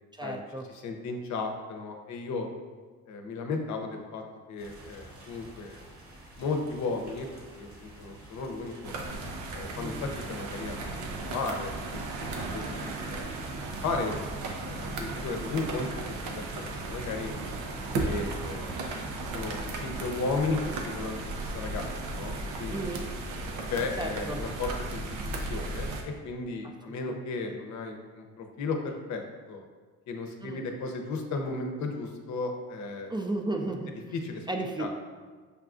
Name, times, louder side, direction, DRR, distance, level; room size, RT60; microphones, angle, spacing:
voice 1, 0.1-0.7 9.7-10.0 22.7-23.1 24.0-24.4 26.8-27.2 30.4-30.7 33.1-33.9 34.5-34.9, right 2 dB, 15° right, 2 dB, 0.4 m, -34 dB
voice 2, 0.7-2.5 3.1-4.2 4.5-5.8 6.4-9.0 9.5-10.9 11.2-12.1 12.3-13.5 13.8-14.2 14.6-16.6 16.9-17.3 18.0-18.8 19.2-22.9 23.7-25.0 25.4-29.2 29.5-29.6 30.1-33.1 33.6-33.7 34.1-34.5 34.8-34.9, left 3 dB, 70° left, 3 dB, 0.6 m, -35 dB
sound 1, 4.6-20.1, right 1 dB, 45° right, 1.0 m, -50 dB
sound 2, 8.8-26.0, right 2 dB, 90° right, 0.6 m, -35 dB
6.6 x 2.3 x 2.5 m, 1.5 s
cardioid pair, 90°, 30 cm